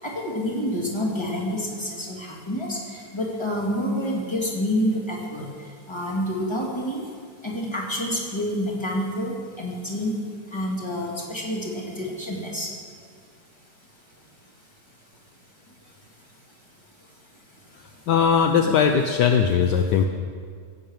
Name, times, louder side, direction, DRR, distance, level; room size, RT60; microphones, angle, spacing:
voice 1, 0.0-7.0 7.4-10.1 10.5-12.7, equal, 15° left, -3 dB, 2.7 m, -28 dB
voice 2, 18.1-20.0, left 7 dB, 70° left, 5 dB, 1.3 m, -19 dB
16.0 x 8.7 x 7.4 m, 2.1 s
omnidirectional pair, 2.0 m